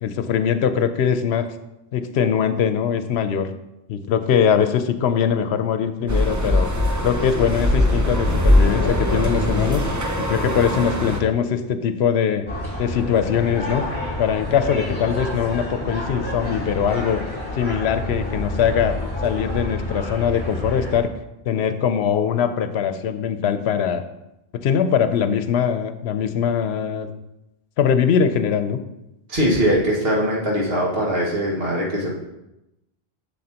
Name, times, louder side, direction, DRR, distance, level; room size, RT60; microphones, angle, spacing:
voice 1, 0.0-1.5 1.9-3.5 3.9-6.7 7.0-9.8 10.3-12.4 12.8-13.8 14.2-17.2 17.5-19.0 19.2-21.1 21.5-24.0 24.5-27.1 27.8-28.8, left 7 dB, 85° left, 10 dB, 0.9 m, -21 dB
sound 1, 6.1-11.2, left 1 dB, 20° right, 0.6 m, -20 dB
sound 2, 12.5-21.0, left 1 dB, 20° left, 1.9 m, -29 dB
voice 2, 29.3-32.1, equal, 70° right, -4 dB, 2.0 m, -21 dB
7.5 x 7.2 x 2.9 m, 0.91 s
omnidirectional pair, 1.1 m